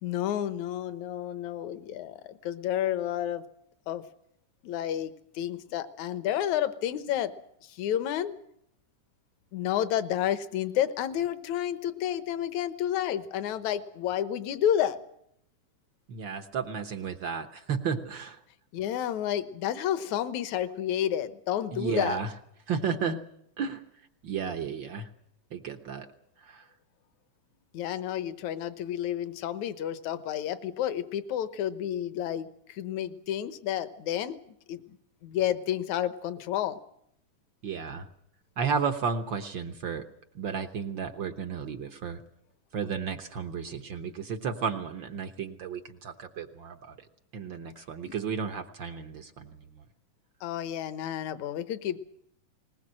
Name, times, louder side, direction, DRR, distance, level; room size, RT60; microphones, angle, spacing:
voice 1, 0.0-3.4 3.9-4.0 4.6-7.3 7.6-8.3 9.5-15.0 18.7-22.2 27.7-34.4 34.7-35.0 35.2-36.8 48.1-48.2 50.4-52.0, left 11 dB, 70° left, 12 dB, 2.3 m, -30 dB
voice 2, 16.1-18.4 21.7-22.3 22.7-23.2 23.6-23.8 24.2-25.1 25.5-26.1 26.5-26.6 37.6-38.1 38.6-40.0 40.3-42.2 42.7-46.9 47.3-49.6, right 6 dB, 65° right, 7 dB, 1.2 m, -33 dB
21.0 x 20.5 x 7.6 m, 0.73 s
omnidirectional pair, 3.6 m